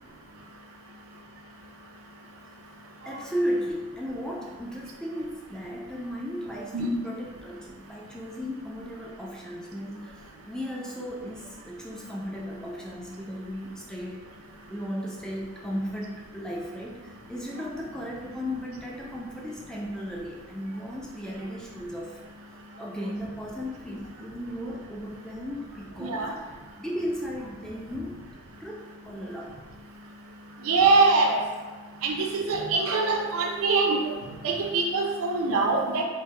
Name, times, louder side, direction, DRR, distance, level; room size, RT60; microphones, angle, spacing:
voice 1, 3.0-22.2 22.8-26.3 26.8-28.2 28.6-29.6 31.7-31.8, equal, 5° left, -3 dB, 0.3 m, -35 dB
voice 2, 26.0-26.3 30.6-31.4 32.0-34.1 34.4-36.0, right 3 dB, 80° right, 1 dB, 0.5 m, -23 dB
3.3 x 2.1 x 3.2 m, 1.3 s
head